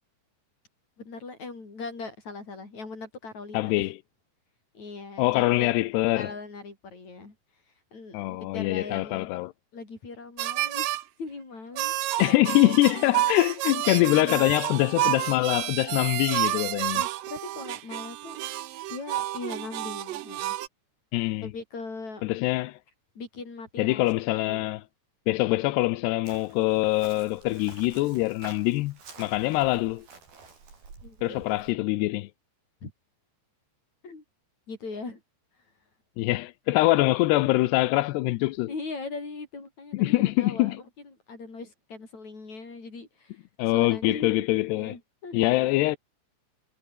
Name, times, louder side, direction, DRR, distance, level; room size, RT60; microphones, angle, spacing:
voice 1, 1.0-3.9 4.7-5.7 6.1-7.3 7.9-9.3 9.7-11.9 13.7-13.8 14.1-14.4 16.9-18.4 18.9-20.6 21.4-22.2 23.1-24.7 31.0-31.4 32.8-32.9 34.0-34.2 34.7-35.2 38.7-43.4 43.7-44.5 44.7-45.6, left 3 dB, 40° left, 8.3 m, -40 dB
voice 2, 3.5-4.0 5.2-6.3 8.1-9.5 12.2-17.0 21.1-21.5 22.2-22.8 23.8-24.8 25.3-30.0 31.2-32.3 36.2-38.7 39.9-40.8 43.6-44.9 45.3-46.0, left 19 dB, 80° left, 2.7 m, -24 dB
sound 1, 10.4-11.0 11.8-20.7, right 15 dB, 70° right, 2.1 m, -30 dB
Chirp tweet, 26.3-31.7, right 5 dB, 55° right, 8.2 m, -49 dB
omnidirectional pair, 5.1 m